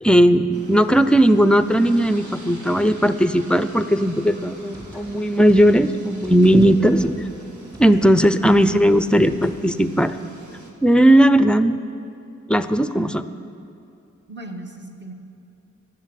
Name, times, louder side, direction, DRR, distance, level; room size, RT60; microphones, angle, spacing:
voice 1, 0.0-7.1 7.8-10.2 10.8-11.8 12.5-13.2, right 1 dB, 5° left, 12 dB, 0.5 m, -17 dB
sound 1, 0.5-10.7, right 3 dB, 75° right, 1.7 m, -43 dB
sound 2, 4.4-9.6, equal, 15° right, 2.7 m, -43 dB
voice 2, 8.4-9.5 14.3-15.1, right 1 dB, 40° right, 2 dB, 1.4 m, -36 dB
13.0 x 7.1 x 9.1 m, 2.7 s
wide cardioid pair, 75°, 30 cm